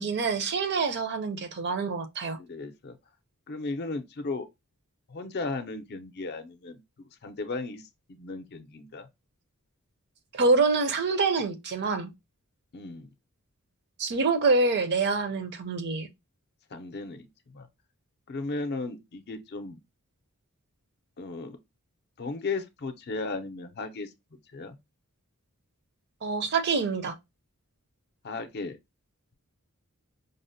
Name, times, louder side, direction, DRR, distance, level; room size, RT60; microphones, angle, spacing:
voice 1, 0.0-2.4 10.3-12.1 14.0-16.1 26.2-27.1, right 4 dB, 50° right, 0.5 m, -26 dB
voice 2, 2.4-3.0 3.5-4.5 5.1-7.8 8.1-9.1 12.7-13.1 16.7-17.7 18.3-19.8 21.2-21.6 22.2-24.1 24.5-24.8 28.2-28.8, left 3 dB, 50° left, 0.5 m, -36 dB
5.3 x 2.1 x 2.6 m
head